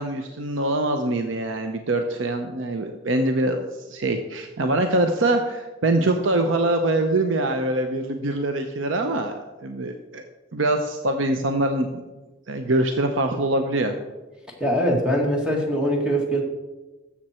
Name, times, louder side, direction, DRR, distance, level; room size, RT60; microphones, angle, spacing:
voice 1, 0.0-10.2 10.5-12.0 12.5-13.9, right 2 dB, 90° right, 6 dB, 0.8 m, -24 dB
voice 2, 14.6-16.4, equal, 5° right, 0 dB, 1.8 m, -22 dB
13.0 x 7.3 x 4.4 m, 1.1 s
head